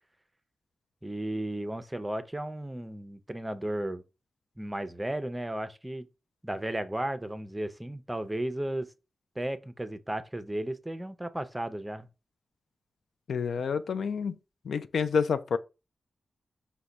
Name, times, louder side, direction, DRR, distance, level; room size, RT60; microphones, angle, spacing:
voice 1, 1.0-4.0 4.6-6.1 6.4-8.9 9.4-12.1, right 1 dB, 15° right, 0.5 m, -34 dB
voice 2, 13.3-14.3 14.6-15.6, left 6 dB, 80° left, 0.4 m, -28 dB
4.7 x 2.2 x 3.9 m
cardioid pair, 70°, 0 cm